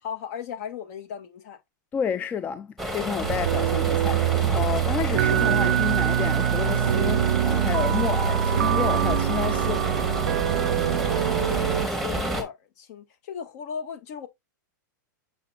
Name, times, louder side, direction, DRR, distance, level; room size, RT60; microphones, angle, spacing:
voice 1, 0.0-1.6 11.3-14.3, left 8 dB, 50° left, 1.7 m, -37 dB
voice 2, 1.9-9.8, left 7 dB, 15° left, 0.4 m, -30 dB
sound 1, 2.8-12.4, right 1 dB, ahead, 1.6 m, -30 dB
sound 2, 3.2-11.9, right 11 dB, 80° right, 0.4 m, -24 dB
7.0 x 5.8 x 2.4 m
hypercardioid pair, 145°, 10 cm